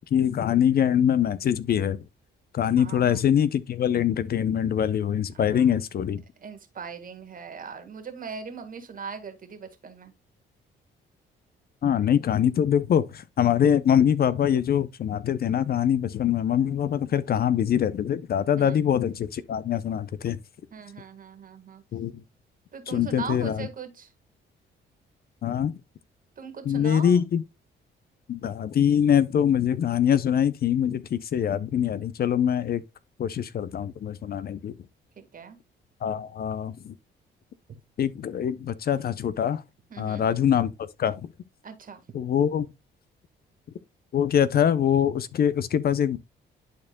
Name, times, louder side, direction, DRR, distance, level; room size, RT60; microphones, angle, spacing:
voice 1, 0.1-2.0 2.5-6.2 11.8-20.4 21.9-22.2 22.9-23.7 25.4-25.7 26.7-27.4 28.3-32.8 33.2-34.7 36.0-36.9 38.0-39.6 40.0-41.1 42.1-42.7 44.1-46.2, left 9 dB, 50° left, 0.6 m, -24 dB
voice 2, 2.8-3.2 5.3-5.8 6.4-10.1 18.5-18.9 20.7-21.8 22.7-24.1 26.4-27.2 35.2-35.6 39.9-40.2 41.6-42.0, right 6 dB, 45° right, 1.9 m, -40 dB
11.5 x 4.4 x 2.2 m
cardioid pair, 90°, 20 cm